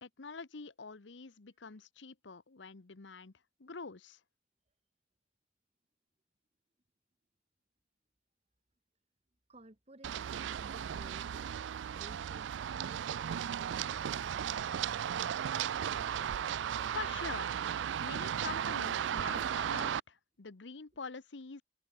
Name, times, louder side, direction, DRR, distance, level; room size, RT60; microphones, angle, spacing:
voice 1, 0.0-3.3 3.6-4.2 16.9-17.5 18.0-21.6, left 4 dB, 85° left, 1.0 m, -45 dB
voice 2, 9.5-11.5 11.9-14.5, right 1 dB, 35° right, 1.9 m, -57 dB
Run, 10.0-20.0, right 9 dB, 90° right, 0.4 m, -35 dB
open air
head